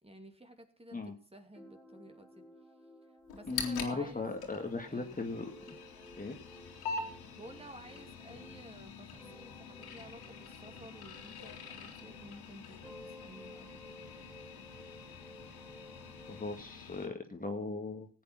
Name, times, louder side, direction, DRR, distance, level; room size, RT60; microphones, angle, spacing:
voice 1, 0.0-2.4 3.3-4.2 4.7-5.3 7.4-14.3, right 1 dB, 15° right, 5 dB, 2.8 m, -53 dB
sound 1, 1.5-8.7 9.1-12.5 12.8-16.5, equal, ahead, 3.7 m, -55 dB
sound 2, 3.3-17.1, left 5 dB, 80° left, 2.8 m, -46 dB
voice 2, 3.5-5.8 6.2-6.4 16.3-18.1, left 3 dB, 25° left, 4 dB, 2.0 m, -38 dB
15.5 x 8.8 x 6.0 m, 0.40 s
supercardioid pair, 60°, 37 cm